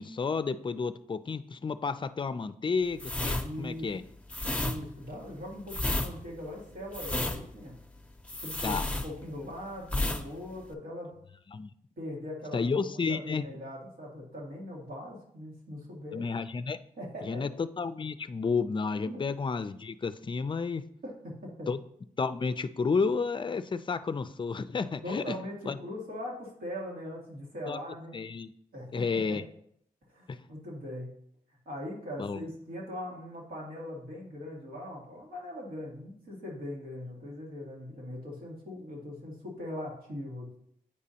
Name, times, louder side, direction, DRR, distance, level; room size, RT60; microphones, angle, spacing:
voice 1, 0.0-4.0 8.6-8.8 11.5-11.7 12.5-13.4 16.1-16.8 17.2-20.8 21.7-21.8 22.2-25.4 25.7-25.8 27.7-27.8 28.1-28.5 28.9-29.4 30.3-30.4 32.2-32.4, left 4 dB, 35° left, 13 dB, 0.4 m, -31 dB
sound 1, 3.0-9.5 9.8-10.2 10.5-10.7, left 1 dB, 10° left, 0.7 m, -32 dB
voice 2, 3.3-3.9 4.4-7.8 8.4-11.1 12.0-16.2 17.0-17.5 19.0-19.2 21.0-21.7 25.0-28.2 28.7-29.4 30.1-31.1 31.7-40.6, left 1 dB, 90° right, -3 dB, 1.9 m, -40 dB
8.6 x 5.0 x 2.8 m, 0.70 s
cardioid pair, 70°, 15 cm